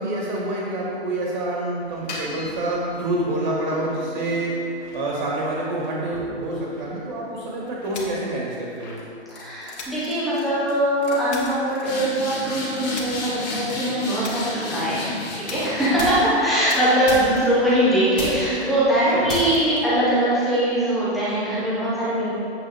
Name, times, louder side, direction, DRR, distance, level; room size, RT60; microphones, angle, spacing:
voice 1, 0.0-4.6 4.9-9.0 19.1-19.4, right 1 dB, 40° right, -4 dB, 2.0 m, -27 dB
sound 1, 1.9-3.1 3.7-7.3 7.7-8.1 8.8-9.0 9.3-9.7 10.0-10.4 10.7-10.8 11.0-16.5 17.1-17.7 18.2-18.6 19.3-19.8, left 2 dB, 40° left, 1.9 m, -34 dB
sound 2, 7.9-8.4 9.8-10.1 11.3-11.7 12.9-13.3 14.2-14.6 15.5-15.9 16.7-17.0, left 3 dB, 70° left, 1.8 m, -38 dB
voice 2, 9.3-15.1 15.5-22.3, right 1 dB, ahead, -12 dB, 0.4 m, -21 dB
8.4 x 8.3 x 3.5 m, 2.6 s
hypercardioid pair, 160°, 34 cm